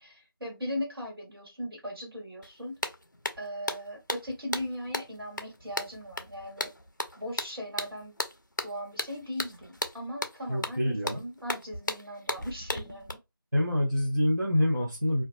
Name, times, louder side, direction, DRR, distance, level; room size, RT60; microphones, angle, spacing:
voice 1, 0.0-2.8 3.4-6.7 7.2-8.2 8.6-13.2, equal, 75° right, 1.3 m, -38 dB
sound 1, 2.4-2.5 2.8-13.1, left 1 dB, 55° left, 0.4 m, -35 dB
voice 2, 10.5-11.2 13.5-15.2, left 1 dB, 50° right, 0.6 m, -26 dB
2.2 x 2.2 x 2.5 m
figure-of-eight pair, 180°, 12 cm